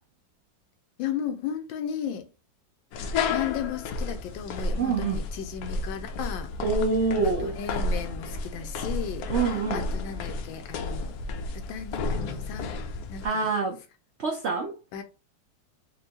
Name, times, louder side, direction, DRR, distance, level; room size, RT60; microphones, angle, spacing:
voice 1, 1.0-2.3 3.3-6.5 7.4-9.3 9.7-11.2 11.5-12.8 13.1-13.5 14.9-15.0, left 8 dB, 90° left, 1.4 m, -35 dB
sound 1, 2.9-13.3, left 3 dB, 70° left, 0.9 m, -32 dB
voice 2, 4.8-5.2 6.6-7.6 9.3-9.9 13.2-13.8 14.2-14.7, right 4 dB, 70° right, 0.6 m, -26 dB
4.3 x 2.6 x 2.8 m
omnidirectional pair, 2.0 m